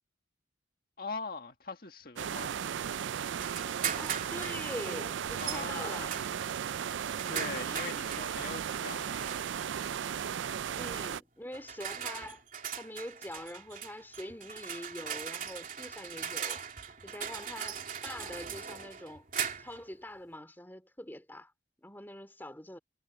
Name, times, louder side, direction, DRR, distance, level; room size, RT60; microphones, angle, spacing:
voice 1, 1.0-2.5 5.4-6.3 7.3-9.2, left 4 dB, 50° left, 1.8 m, -41 dB
sound 1, 2.2-11.2, right 8 dB, 75° right, 0.4 m, -36 dB
sound 2, 3.4-4.6 5.4-5.7 6.1-8.3 9.1-9.7 10.7-10.9 11.5-19.8, right 8 dB, 45° right, 3.2 m, -39 dB
voice 2, 4.0-6.2 7.4-7.7 10.8-12.4 12.8-16.6 17.0-19.3 19.6-21.5 21.8-22.8, left 1 dB, 10° left, 2.8 m, -44 dB
head